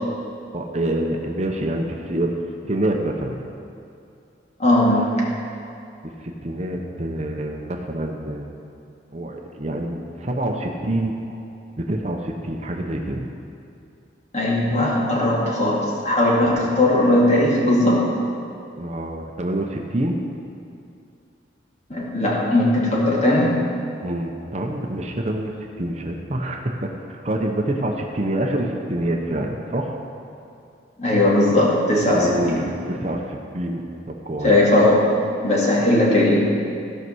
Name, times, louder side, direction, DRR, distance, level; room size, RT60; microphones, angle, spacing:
voice 1, 0.5-3.4 6.0-8.5 9.1-11.1 11.8-13.3 18.8-20.2 24.0-30.0 32.1-34.6, right 1 dB, 40° right, 2 dB, 0.8 m, -26 dB
voice 2, 4.6-5.2 14.3-18.1 21.9-23.6 31.0-32.6 34.4-36.4, left 1 dB, 40° left, -4 dB, 2.2 m, -18 dB
15.0 x 5.5 x 6.2 m, 2.6 s
head